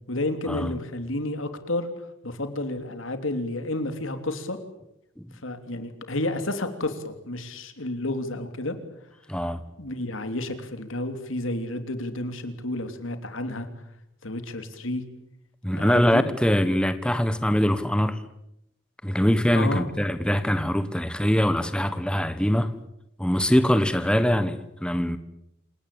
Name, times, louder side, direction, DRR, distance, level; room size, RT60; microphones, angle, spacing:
voice 1, 0.1-1.9 2.2-4.6 5.4-8.8 9.8-13.7 14.2-15.0 15.7-16.2 19.5-19.9, left 1 dB, 90° left, 3.2 m, -31 dB
voice 2, 9.3-9.6 15.6-18.2 19.0-22.8 23.2-25.2, equal, 5° left, 1.1 m, -23 dB
28.0 x 18.5 x 8.6 m
head